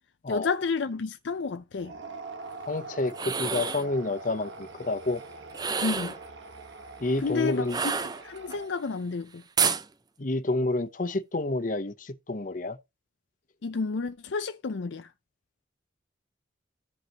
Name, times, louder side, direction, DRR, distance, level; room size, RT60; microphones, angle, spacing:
voice 1, 0.3-1.9 5.8-6.1 7.2-7.9 8.2-9.4 13.6-15.1, left 4 dB, 85° left, 0.6 m, -30 dB
sound 1, 1.8-8.9, right 3 dB, 80° right, 1.4 m, -44 dB
voice 2, 2.7-5.2 7.0-7.8 10.2-12.8, left 2 dB, 45° left, 0.8 m, -29 dB
sound 2, 3.1-3.9 5.5-6.2 7.7-8.6 9.6-9.9, right 6 dB, 20° right, 0.5 m, -28 dB
14.0 x 5.3 x 2.9 m
head